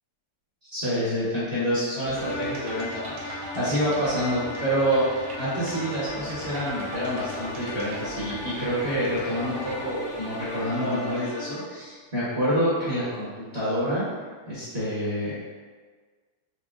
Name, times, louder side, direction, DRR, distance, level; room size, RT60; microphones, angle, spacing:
voice 1, 0.7-14.1 14.5-15.5, equal, 40° right, -11 dB, 1.1 m, -27 dB
sound 1, 2.0-9.9, right 2 dB, 75° right, 1.3 m, -40 dB
sound 2, 2.1-11.8, left 2 dB, 50° left, 1.1 m, -38 dB
Mechanisms / Drill, 6.1-11.6, left 2 dB, 80° left, 0.6 m, -43 dB
4.7 x 2.5 x 2.3 m, 1.5 s
omnidirectional pair, 2.1 m